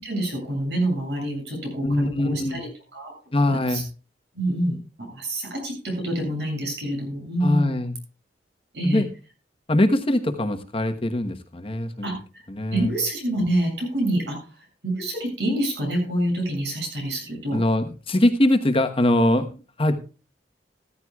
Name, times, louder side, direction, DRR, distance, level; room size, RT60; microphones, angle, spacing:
voice 1, 0.0-3.1 3.4-3.8 4.3-7.7 8.7-9.0 12.0-12.4 12.7-14.4 14.8-17.6, right 1 dB, 75° right, 1 dB, 7.7 m, -27 dB
voice 2, 1.8-2.6 3.3-3.8 7.4-7.9 8.8-9.0 9.7-12.1 12.5-12.9 17.5-20.0, left 1 dB, 30° left, 7 dB, 1.2 m, -22 dB
15.5 x 14.0 x 2.4 m, 0.34 s
head